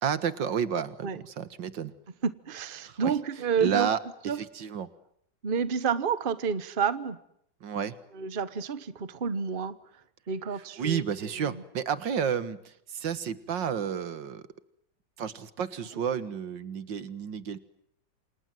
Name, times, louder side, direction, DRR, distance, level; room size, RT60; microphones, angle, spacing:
voice 1, 0.0-1.9 2.8-3.1 3.6-4.0 4.3-4.9 7.6-8.0 10.8-12.6 12.9-14.5 15.2-17.6, right 8 dB, 85° right, 14 dB, 2.2 m, -31 dB
voice 2, 2.2-3.9 4.3-4.4 5.4-7.2 8.1-9.7 10.3-11.0 11.4-11.6, right 6 dB, 35° right, 14 dB, 1.2 m, -29 dB
29.0 x 27.0 x 7.7 m, 0.72 s
omnidirectional pair, 1.9 m